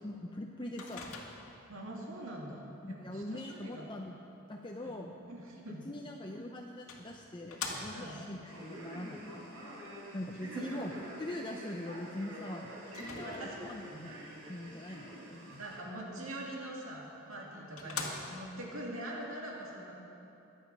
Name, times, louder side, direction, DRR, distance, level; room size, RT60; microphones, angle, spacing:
voice 1, 0.0-1.1 2.8-4.2 4.5-5.1 5.7-9.7 10.1-10.9 11.2-14.1 14.5-15.6 17.8-17.9, left 1 dB, 20° left, 1 dB, 0.6 m, -42 dB
Microwave oven, 0.8-1.7 6.0-6.1 6.9-8.3 12.9-13.8 16.9-17.0 17.4-17.5 17.8-18.6, left 4 dB, 90° left, 1.8 m, -42 dB
voice 2, 1.7-3.9 4.8-5.0 5.2-5.8 7.9-8.2 10.5-10.8 13.2-14.2 15.6-19.9, right 1 dB, 70° right, -2 dB, 2.6 m, -43 dB
Male speech man speaking, 8.5-15.8, equal, 85° right, 4.0 m, -47 dB
22.0 x 8.3 x 5.5 m, 2.8 s
head